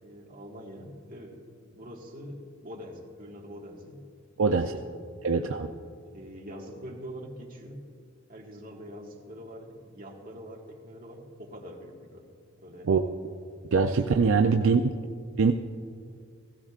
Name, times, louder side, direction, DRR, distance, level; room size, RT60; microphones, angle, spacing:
voice 1, 0.0-1.4 1.7-4.1 4.3-4.8 5.3-5.6 6.0-7.8 8.3-12.3 12.6-12.9 13.9-14.5, equal, 45° right, -1 dB, 1.6 m, -44 dB
voice 2, 4.4-4.7 5.2-5.7 12.8-13.0 13.7-14.8 15.4-15.5, right 5 dB, 75° right, 5 dB, 0.5 m, -22 dB
16.5 x 16.0 x 2.4 m, 2.2 s
head